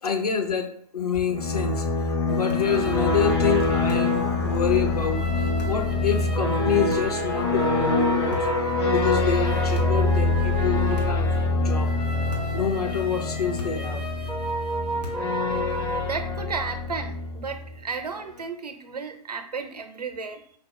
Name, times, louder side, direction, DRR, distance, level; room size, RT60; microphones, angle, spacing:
voice 1, 0.0-8.5 8.9-11.9 12.5-14.0, left 7 dB, 70° left, 5 dB, 0.8 m, -27 dB
sound 1, 1.1-17.8, left 3 dB, 40° left, 0.7 m, -25 dB
sound 2, 2.3-16.0, right 1 dB, 5° right, 0.4 m, -33 dB
sound 3, 2.5-2.8 3.9-4.2 5.6-5.9 6.9-7.3 8.3-8.7 9.7-10.1 10.9-11.4 12.3-12.6 13.6-14.0 15.0-15.4, left 1 dB, 90° left, 1.3 m, -38 dB
voice 2, 16.0-20.6, right 5 dB, 75° right, 7 dB, 0.7 m, -33 dB
5.0 x 2.0 x 4.1 m, 0.64 s
figure-of-eight pair, 120°, 21 cm